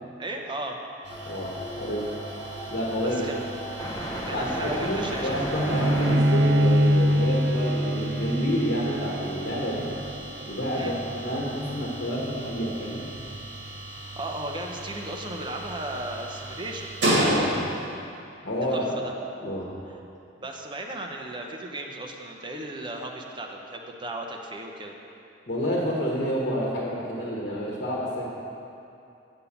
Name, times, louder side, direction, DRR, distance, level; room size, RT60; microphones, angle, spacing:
voice 1, 0.2-0.8 3.0-3.4 4.3-5.6 10.7-10.9 14.0-16.9 18.6-19.1 20.4-24.9, right 1 dB, 25° right, 1 dB, 0.7 m, -36 dB
sound 1, 1.0-17.9, right 1 dB, 85° right, 1.9 m, -34 dB
sound 2, 1.1-6.2, equal, 20° left, 0.9 m, -35 dB
voice 2, 1.3-2.1 2.7-3.3 4.3-9.9 10.5-11.0 11.2-13.1 17.2-17.5 18.4-18.8 19.4-19.7 25.5-28.3, equal, 55° left, -4 dB, 1.3 m, -29 dB
Bowed string instrument, 5.7-11.0, equal, 65° right, 0.6 m, -23 dB
8.2 x 5.5 x 7.1 m, 2.7 s
head